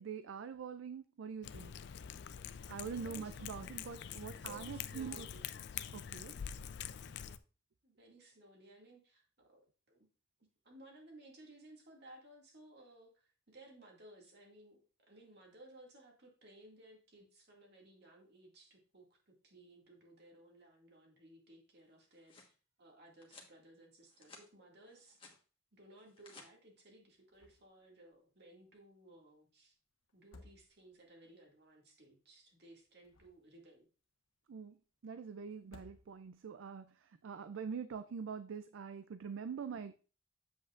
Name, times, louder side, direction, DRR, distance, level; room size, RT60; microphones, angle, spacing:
voice 1, 0.0-1.7 2.7-5.3 5.9-6.3 34.5-34.8 35.0-39.9, right 6 dB, 70° right, 11 dB, 0.4 m, -44 dB
Cat, 1.4-7.4, left 8 dB, 55° left, 0.4 m, -45 dB
voice 2, 2.9-3.4 4.4-5.5 7.8-10.1 10.6-25.3 25.7-29.7 30.1-33.9, right 1 dB, 55° right, 0 dB, 2.1 m, -59 dB
sound 1, 21.9-22.5 23.2-23.5 24.0-24.5 24.8-25.4 26.0-26.5, left 4 dB, 25° left, 1.3 m, -58 dB
sound 2, 27.3-27.8 28.1-28.2 30.1-31.1 32.8-33.7 35.6-36.5, left 2 dB, 80° left, 1.1 m, -60 dB
7.7 x 7.7 x 2.5 m, 0.35 s
head